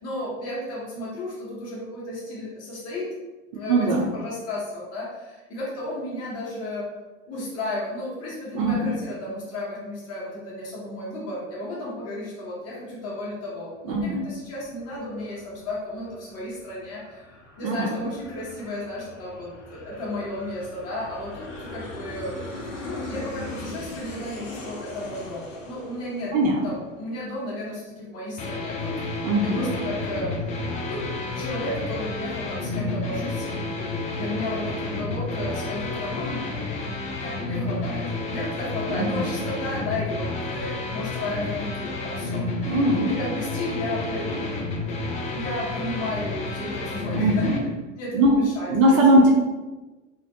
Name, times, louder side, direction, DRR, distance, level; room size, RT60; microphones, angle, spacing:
voice 1, 0.0-3.1 3.5-3.9 4.1-6.9 7.3-22.5 22.8-26.3 26.6-30.3 30.9-31.1 31.3-36.4 37.2-42.7 43.1-44.5 45.3-47.5 48.0-48.7, left 1 dB, 40° left, -7 dB, 1.3 m, -33 dB
voice 2, 3.7-4.1 8.5-9.0 13.9-14.3 17.6-17.9 26.3-26.6 29.2-29.8 38.9-39.3 42.7-43.2 47.1-47.6 48.1-48.4 48.7-49.3, right 1 dB, 40° right, -1 dB, 0.5 m, -20 dB
Aircraft, 14.3-27.3, left 2 dB, 75° left, 0.6 m, -41 dB
sound 1, 28.4-47.6, left 2 dB, 20° left, 0.4 m, -30 dB
2.4 x 2.1 x 2.7 m, 1.2 s
figure-of-eight pair, 75°, 38 cm